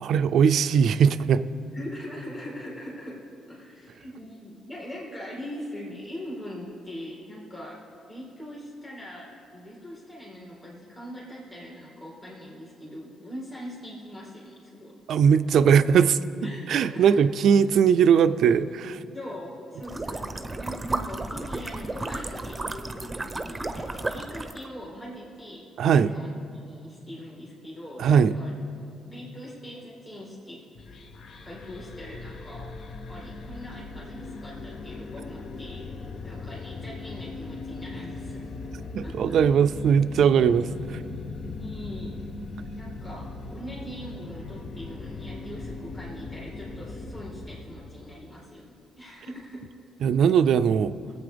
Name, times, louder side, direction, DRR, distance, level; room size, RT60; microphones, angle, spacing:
voice 1, 0.0-1.4 15.1-16.2 16.7-19.0 25.8-26.1 28.0-28.3 38.9-41.0 50.0-50.9, right 7 dB, 70° right, 12 dB, 0.4 m, -20 dB
voice 2, 1.7-7.8 8.1-15.0 16.4-17.5 19.1-26.3 26.7-28.5 29.1-30.6 30.9-31.0 31.4-35.9 36.2-38.5 39.0-39.4 41.4-42.2 42.7-49.6, equal, 30° left, -6 dB, 2.4 m, -41 dB
sound 1, 19.8-24.7, right 2 dB, 20° right, 0.7 m, -33 dB
sound 2, 30.7-48.2, left 3 dB, 55° left, 0.8 m, -39 dB
20.0 x 8.3 x 3.4 m, 2.6 s
cardioid pair, 90°, 0 cm